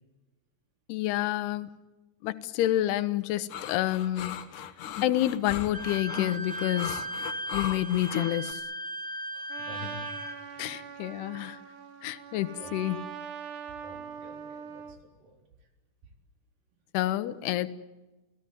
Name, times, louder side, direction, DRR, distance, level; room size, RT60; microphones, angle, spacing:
voice 1, 0.9-1.7 2.2-4.4 5.0-7.0 7.5-8.6 10.6-11.6 12.0-13.0 16.9-17.7, left 14 dB, 80° left, 12 dB, 3.0 m, -28 dB
sound 1, 3.5-8.5, left 9 dB, 60° left, 2.7 m, -37 dB
Wind instrument woodwind instrument, 5.7-10.4, right 1 dB, 40° right, 3.7 m, -37 dB
voice 2, 9.3-10.2 10.5-10.7 12.6-12.8 13.8-15.4, left 1 dB, 60° right, 4 dB, 5.4 m, -47 dB
Trumpet, 9.5-15.0, right 7 dB, 85° right, 4.3 m, -42 dB
29.5 x 18.0 x 9.4 m, 1.1 s
omnidirectional pair, 4.7 m